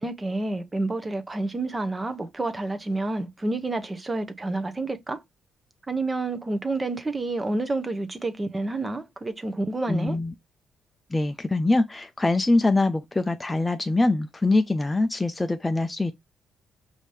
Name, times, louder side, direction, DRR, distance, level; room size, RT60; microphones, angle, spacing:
voice 1, 0.0-5.2 5.9-10.2, right 2 dB, 20° right, 0.7 m, -29 dB
voice 2, 9.9-10.3 11.1-16.1, left 2 dB, 15° left, 0.4 m, -23 dB
5.0 x 2.7 x 3.2 m
cardioid pair, 90°, 0 cm